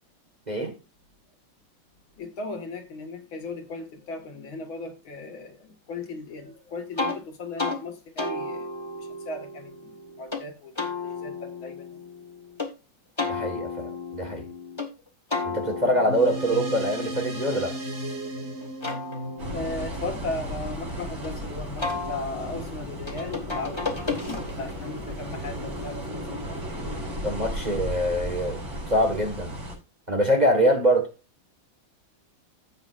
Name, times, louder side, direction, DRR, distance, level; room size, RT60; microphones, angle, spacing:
voice 1, 2.2-8.7 9.0-10.8 11.0-11.9 19.5-24.3 24.6-26.0 26.3-26.7, left 3 dB, 75° left, 2.6 m, -37 dB
sound 1, 7.0-7.2 7.6-7.8 8.2-10.4 10.8-12.7 13.2-14.9 15.3-18.2 18.6-21.3 21.8-24.8, left 3 dB, 15° left, 1.6 m, -34 dB
voice 2, 13.3-14.5 15.4-17.8 27.2-28.6 28.9-29.6 30.1-31.1, equal, 20° right, 1.6 m, -24 dB
sound 2, 16.1-20.9, right 1 dB, 50° right, 3.0 m, -35 dB
sound 3, 19.4-29.8, equal, 70° right, 5.9 m, -35 dB
16.0 x 5.6 x 2.5 m
omnidirectional pair, 2.2 m